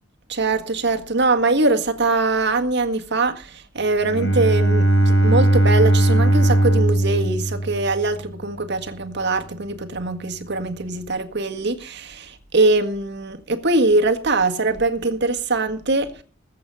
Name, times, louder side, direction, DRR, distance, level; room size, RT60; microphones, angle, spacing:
voice 1, 0.3-16.1, right 3 dB, 55° right, 1.8 m, -22 dB
Bowed string instrument, 4.0-8.3, right 1 dB, 65° left, 5.4 m, -18 dB
21.0 x 8.5 x 5.6 m
head